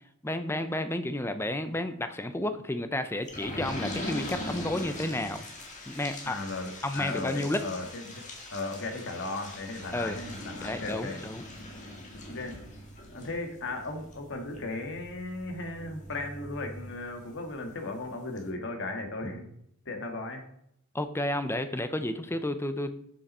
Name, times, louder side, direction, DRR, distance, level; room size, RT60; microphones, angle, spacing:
voice 1, 0.2-5.5 5.9-6.4 6.8-7.6 9.9-10.2 10.6-11.4 20.9-22.9, left 1 dB, 10° left, 9 dB, 0.6 m, -31 dB
sound 1, 3.3-17.6 18.0-18.1 18.4-18.5, left 1 dB, 35° left, 1.9 m, -41 dB
voice 2, 6.2-8.2 8.5-11.2 12.3-12.6 13.1-19.4 19.8-20.4, left 2 dB, 55° left, 4 dB, 1.7 m, -36 dB
7.6 x 7.1 x 5.4 m, 0.73 s
head